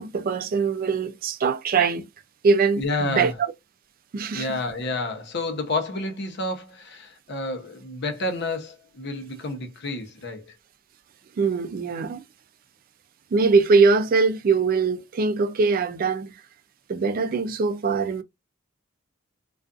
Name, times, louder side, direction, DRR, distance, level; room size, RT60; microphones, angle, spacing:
voice 1, 0.0-2.1 2.4-3.3 4.1-4.5 11.4-12.2 13.3-16.3 16.9-18.2, right 4 dB, 45° right, 0.3 m, -22 dB
voice 2, 2.8-3.4 4.3-10.5, left 2 dB, 60° left, 0.7 m, -30 dB
2.4 x 2.4 x 2.3 m
head